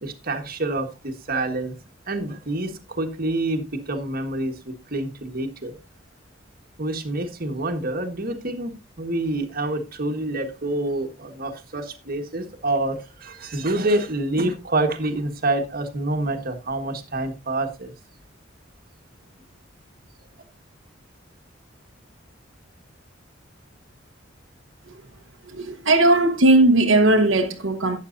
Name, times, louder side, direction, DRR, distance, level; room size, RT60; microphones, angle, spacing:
voice 1, 0.0-1.7 2.1-5.7 6.8-17.9, right 2 dB, 50° right, 1.5 m, -27 dB
voice 2, 25.4-28.0, right 2 dB, 75° right, 1.1 m, -18 dB
12.5 x 9.0 x 2.6 m
head